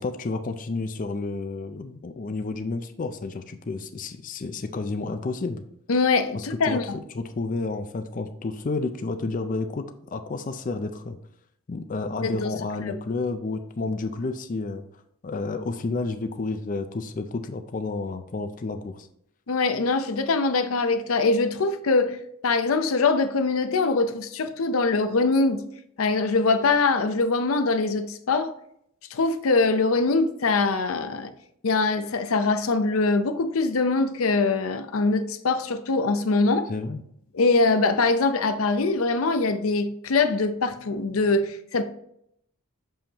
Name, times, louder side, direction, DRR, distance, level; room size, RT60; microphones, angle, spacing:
voice 1, 0.0-5.6 6.3-6.8 7.1-11.2 11.7-14.8 15.2-19.1 36.7-37.0, left 3 dB, 40° left, 0.4 m, -30 dB
voice 2, 5.9-7.0 12.2-12.5 12.9-13.0 19.5-22.2 22.4-25.6 26.0-28.5 29.1-31.3 31.6-36.7 37.3-41.8, left 3 dB, 85° left, 0.6 m, -23 dB
6.7 x 5.6 x 2.9 m
head